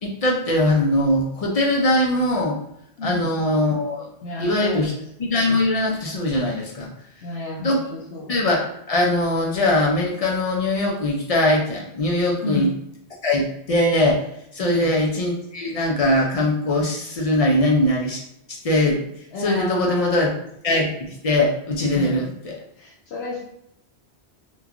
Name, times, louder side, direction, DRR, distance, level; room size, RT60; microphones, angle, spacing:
voice 1, 0.0-2.6 3.0-4.1 4.4-4.9 5.2-6.9 7.6-7.8 8.3-12.7 13.2-14.3 14.5-18.2 18.6-19.0 19.4-20.3 20.6-22.6, left 1 dB, 55° left, -2 dB, 0.4 m, -21 dB
voice 2, 3.0-3.4 4.2-4.9 7.2-8.3 12.4-12.8 14.6-15.0 19.3-20.2 21.9-22.3 22.8-23.4, left 2 dB, 75° left, -5 dB, 0.8 m, -31 dB
3.0 x 2.2 x 2.4 m, 0.76 s
omnidirectional pair, 1.1 m